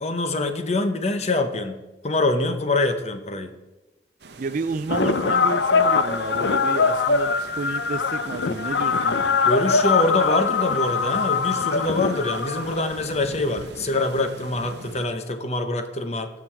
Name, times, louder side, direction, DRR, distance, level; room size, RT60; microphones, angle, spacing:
voice 1, 0.0-3.5 5.0-5.1 9.5-16.3, left 2 dB, 35° left, 8 dB, 0.8 m, -25 dB
sound 1, 4.2-15.1, right 3 dB, 65° right, 0.8 m, -44 dB
voice 2, 4.4-9.2, right 3 dB, 45° right, 13 dB, 0.4 m, -31 dB
sound 2, 4.9-13.4, left 5 dB, 75° left, 0.6 m, -22 dB
15.0 x 6.0 x 4.6 m, 1.1 s
head